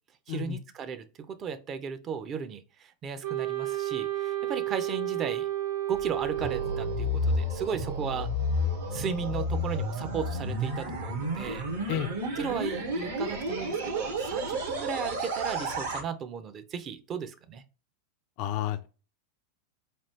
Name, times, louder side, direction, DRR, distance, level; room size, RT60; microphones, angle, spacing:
voice 1, 0.3-5.5 5.9-8.3 8.9-11.7 12.4-17.6, right 6 dB, 35° right, 0.5 m, -35 dB
Wind instrument woodwind instrument, 3.2-7.2, right 13 dB, 55° right, 1.3 m, -31 dB
sound 1, 5.9-16.0, equal, 75° right, 1.0 m, -31 dB
voice 2, 18.4-18.9, left 12 dB, 50° left, 0.3 m, -31 dB
3.3 x 2.4 x 2.7 m
figure-of-eight pair, 90°, 0 cm